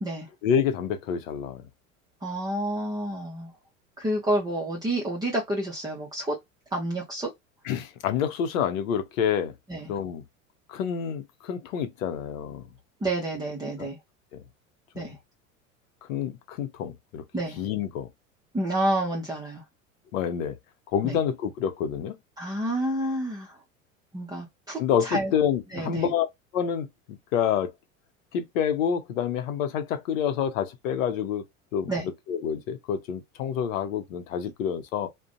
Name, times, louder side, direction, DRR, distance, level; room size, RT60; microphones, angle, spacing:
voice 1, 0.4-1.7 7.6-9.5 9.9-10.2 10.7-12.7 13.8-13.9 14.3-14.4 15.0-15.1 16.1-17.2 17.6-18.1 20.1-20.5 20.9-22.2 24.8-26.3 26.5-27.7 28.3-31.4 31.7-35.1, left 8 dB, 70° left, 0.7 m, -28 dB
voice 2, 2.2-3.5 4.0-6.4 6.7-7.3 9.7-9.9 13.0-14.0 14.9-15.2 17.3-17.6 18.5-19.6 21.0-21.2 22.4-23.6 24.1-25.3 25.7-26.1 31.9-32.1, right 1 dB, 10° right, 0.6 m, -29 dB
2.4 x 2.2 x 2.5 m
hypercardioid pair, 85°, 41 cm